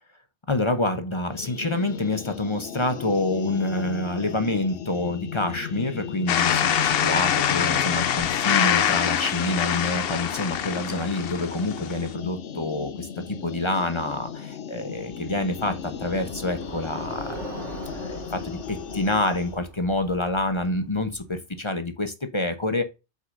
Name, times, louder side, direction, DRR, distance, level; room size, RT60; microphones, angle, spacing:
voice 1, 0.5-17.7 17.9-22.8, left 2 dB, 25° left, 0.9 m, -27 dB
sound 1, 1.3-19.6, left 8 dB, 80° left, 1.1 m, -36 dB
sound 2, 6.3-12.1, left 9 dB, 60° left, 0.8 m, -24 dB
Bicycle, 15.0-21.5, right 3 dB, 85° right, 2.4 m, -42 dB
8.1 x 6.5 x 2.6 m
omnidirectional pair, 1.2 m